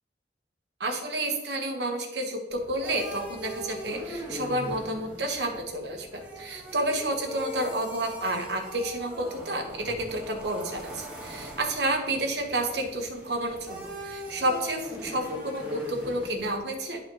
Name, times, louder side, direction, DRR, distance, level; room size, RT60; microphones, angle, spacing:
voice 1, 0.8-17.0, right 1 dB, 70° right, 3 dB, 1.2 m, -30 dB
sound 1, 2.5-16.6, equal, 5° right, 1.4 m, -41 dB
11.0 x 4.1 x 3.0 m, 1.2 s
head